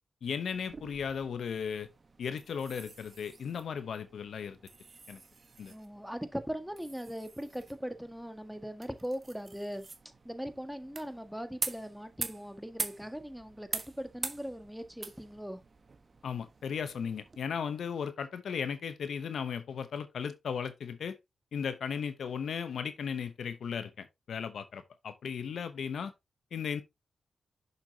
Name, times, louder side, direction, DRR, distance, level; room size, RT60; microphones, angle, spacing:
voice 1, 0.2-1.9 2.2-4.6 5.1-5.2 5.6-5.7 16.2-21.2 21.5-26.1 26.5-26.8, left 7 dB, 80° left, 0.8 m, -36 dB
sound 1, 0.5-17.4, right 4 dB, 45° right, 1.3 m, -45 dB
voice 2, 5.7-9.8 10.2-15.6, equal, ahead, 1.7 m, -40 dB
6.7 x 6.4 x 2.8 m
cardioid pair, 50°, 0 cm